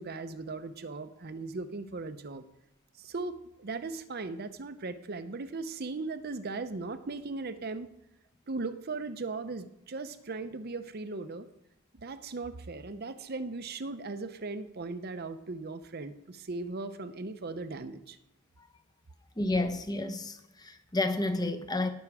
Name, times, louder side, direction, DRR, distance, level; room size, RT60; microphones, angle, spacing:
voice 1, 0.0-2.4 3.0-7.9 8.5-11.5 11.9-18.2, right 3 dB, 45° right, 0.7 m, -38 dB
voice 2, 19.4-21.9, left 2 dB, 20° left, 0.8 m, -30 dB
18.0 x 6.3 x 4.8 m
head